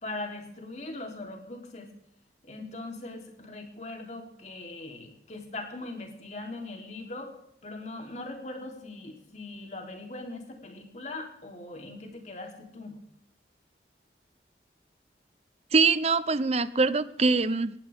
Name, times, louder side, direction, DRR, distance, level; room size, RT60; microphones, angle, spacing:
voice 1, 0.0-1.9 2.4-7.3 7.6-13.0, left 2 dB, 40° left, 2 dB, 3.4 m, -40 dB
voice 2, 15.7-17.7, right 4 dB, 35° right, 15 dB, 0.7 m, -23 dB
19.5 x 15.5 x 3.6 m, 0.72 s
head